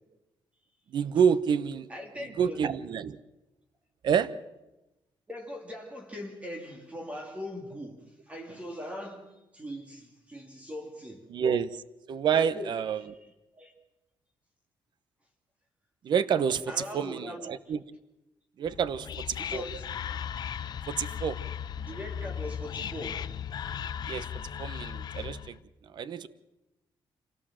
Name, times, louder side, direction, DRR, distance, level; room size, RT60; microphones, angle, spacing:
voice 1, 0.9-1.9 2.4-3.2 4.0-4.3 11.3-11.8 12.1-13.0 16.0-17.8 18.6-19.6 20.9-21.4 24.0-24.3 24.6-25.6 25.8-26.3, right 7 dB, 60° right, 16 dB, 0.9 m, -28 dB
voice 2, 1.9-2.6 5.3-11.3 12.3-12.7 13.0-13.3 13.5-13.7 16.7-17.7 19.4-20.0 21.8-23.3, left 1 dB, 15° right, 2 dB, 2.7 m, -41 dB
Whispering, 18.6-25.6, left 8 dB, 55° left, 0.8 m, -37 dB
26.5 x 17.5 x 7.5 m, 0.99 s
cardioid pair, 140°, 9 cm